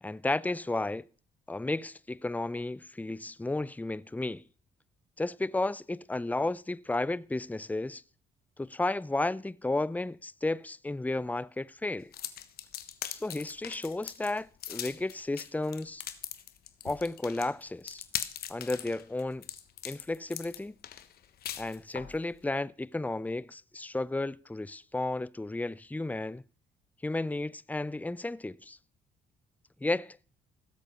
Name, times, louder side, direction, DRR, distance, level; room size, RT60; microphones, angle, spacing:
voice 1, 0.0-1.0 1.5-4.4 5.2-8.0 8.6-12.1 13.1-16.0 16.8-18.0 18.5-19.5 19.8-20.8 21.6-26.4 27.0-28.8 29.8-30.2, left 2 dB, 10° left, 0.7 m, -33 dB
sound 1, 12.1-22.2, left 10 dB, 65° left, 1.3 m, -40 dB
18.0 x 8.1 x 5.7 m
supercardioid pair, 60°, 17 cm